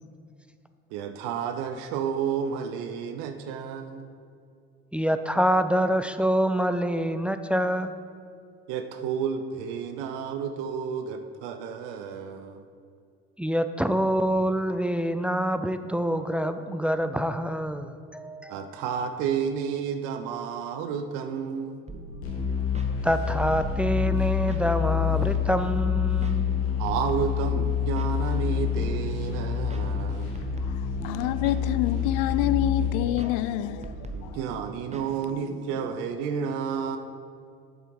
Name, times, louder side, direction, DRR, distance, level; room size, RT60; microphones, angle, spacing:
voice 1, 0.9-4.2 8.7-12.7 18.5-21.8 26.8-30.4 34.1-37.0, right 7 dB, 70° right, 0.7 m, -31 dB
voice 2, 4.9-7.9 13.4-18.7 23.0-26.4, equal, 5° right, 0.4 m, -26 dB
sound 1, 21.9-35.8, right 2 dB, 20° right, 1.0 m, -42 dB
sound 2, 22.2-32.9, left 8 dB, 85° left, 1.9 m, -27 dB
voice 3, 30.4-34.4, left 11 dB, 65° left, 0.5 m, -28 dB
7.8 x 6.6 x 4.7 m
hypercardioid pair, 65°, 33 cm